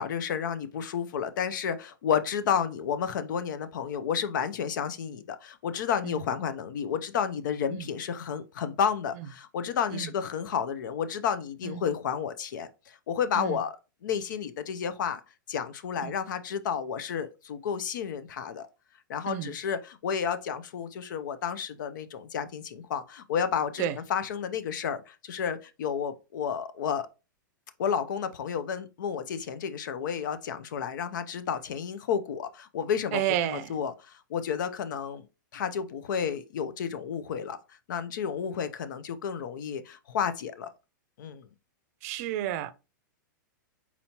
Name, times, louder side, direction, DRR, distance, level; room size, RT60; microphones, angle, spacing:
voice 1, 0.0-13.7 14.0-15.2 15.5-18.7 19.1-23.8 24.1-27.1 27.8-33.2 33.5-35.3 35.5-37.6 37.9-40.7 41.2-41.5, left 7 dB, 70° left, 0.6 m, -31 dB
voice 2, 33.1-33.8 42.0-42.7, right 12 dB, 50° right, 0.5 m, -31 dB
4.2 x 4.2 x 2.8 m
hypercardioid pair, 125°, 11 cm